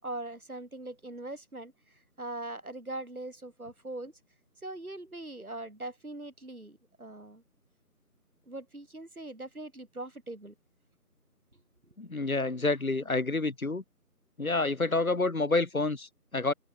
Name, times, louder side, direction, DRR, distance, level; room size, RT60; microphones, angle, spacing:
voice 1, 0.0-4.1 4.6-7.4 8.5-10.5, right 2 dB, 65° right, 7.4 m, -41 dB
voice 2, 12.0-13.8 14.4-16.5, left 3 dB, 60° left, 1.7 m, -28 dB
open air
figure-of-eight pair, 165°, 46 cm